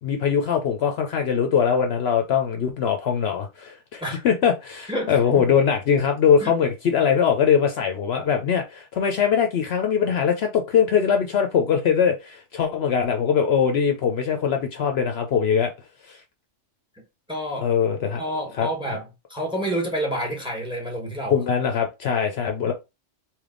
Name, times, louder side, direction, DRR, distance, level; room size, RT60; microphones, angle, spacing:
voice 1, 0.0-15.7 16.1-16.2 17.6-18.2 18.6-18.7 21.3-22.7, left 7 dB, 65° left, 0.8 m, -22 dB
voice 2, 4.9-5.5 6.4-6.5 17.3-17.7 18.2-21.4, right 1 dB, 5° right, 1.1 m, -29 dB
3.4 x 3.0 x 3.7 m
omnidirectional pair, 1.2 m